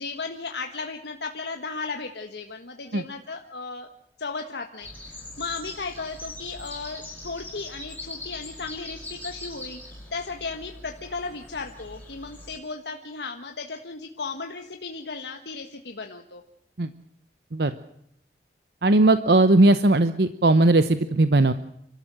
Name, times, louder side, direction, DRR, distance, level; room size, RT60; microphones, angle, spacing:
voice 1, 0.0-3.9 4.2-9.8 10.1-16.4, left 4 dB, 70° left, 4 dB, 1.5 m, -35 dB
sound 1, 4.8-12.6, left 2 dB, 10° left, 7.3 m, -41 dB
voice 2, 18.8-21.5, right 2 dB, 65° right, 12 dB, 0.9 m, -18 dB
29.5 x 13.5 x 7.6 m, 0.75 s
head